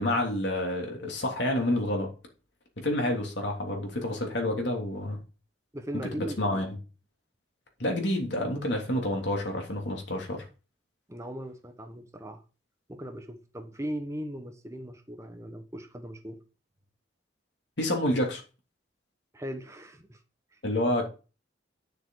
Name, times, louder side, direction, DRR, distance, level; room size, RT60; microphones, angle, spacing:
voice 1, 0.0-2.1 2.8-5.2 6.1-6.7 7.8-10.4 17.8-18.4 20.6-21.1, left 1 dB, 70° left, 3.1 m, -28 dB
voice 2, 5.7-6.6 11.1-12.4 12.9-16.4 19.3-20.2 20.5-20.6, equal, 15° right, 1.2 m, -38 dB
10.0 x 6.7 x 4.8 m
head